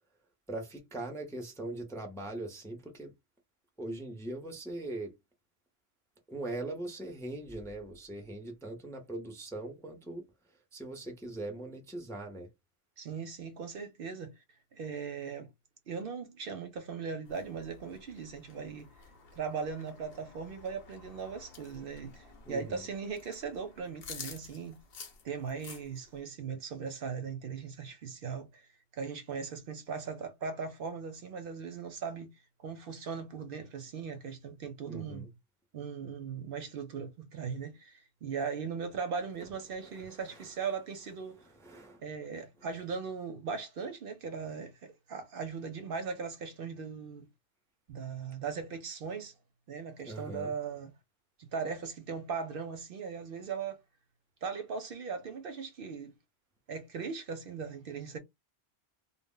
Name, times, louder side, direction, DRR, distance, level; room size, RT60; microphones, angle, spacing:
voice 1, 0.5-3.1 3.8-5.1 6.3-10.2 10.7-12.5 22.5-22.9 34.9-35.3 39.4-39.5 39.8-42.0 42.3-42.5 50.1-50.5, right 2 dB, 5° left, 0.5 m, -41 dB
voice 2, 13.0-14.3 14.7-15.5 15.9-18.9 19.3-24.8 25.2-28.7 28.9-32.3 32.6-35.3 35.7-41.4 42.0-47.3 47.9-49.3 49.7-50.9 51.4-53.8 54.4-56.1 56.7-58.2, right 5 dB, 65° right, 0.7 m, -39 dB
sound 1, 17.2-26.2, left 5 dB, 65° left, 0.9 m, -51 dB
2.1 x 2.0 x 3.6 m
omnidirectional pair, 1.1 m